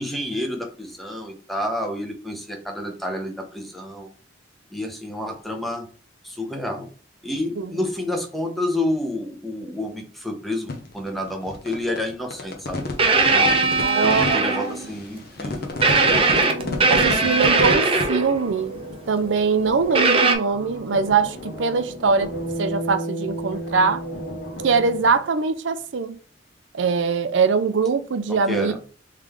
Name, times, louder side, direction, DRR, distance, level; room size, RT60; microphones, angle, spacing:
voice 1, 0.0-4.1 4.7-5.9 6.2-6.9 7.2-12.9 13.3-15.7 28.3-28.8, left 1 dB, ahead, 0.8 m, -29 dB
sound 1, 10.7-18.1, left 2 dB, 55° left, 0.8 m, -30 dB
sound 2, 13.0-14.9 15.8-18.4 19.9-20.3, right 3 dB, 30° right, 0.6 m, -19 dB
voice 2, 13.8-14.4 16.9-18.7 19.1-22.3 22.6-24.0 24.6-26.2 26.7-28.7, right 5 dB, 80° right, 0.5 m, -22 dB
sound 3, 15.7-25.2, right 1 dB, 75° left, 1.6 m, -34 dB
3.7 x 3.2 x 3.5 m
head